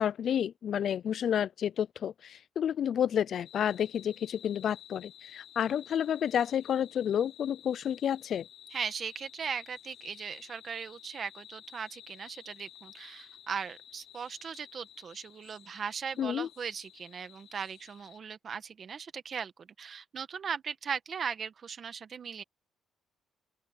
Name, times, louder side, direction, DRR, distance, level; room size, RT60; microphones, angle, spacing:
voice 1, 0.0-8.5 16.2-16.5, left 9 dB, 65° left, 0.4 m, -30 dB
sound 1, 3.4-18.2, left 11 dB, 80° left, 3.6 m, -53 dB
voice 2, 8.7-22.4, right 6 dB, 50° right, 1.8 m, -38 dB
open air
cardioid pair, 90°, 0 cm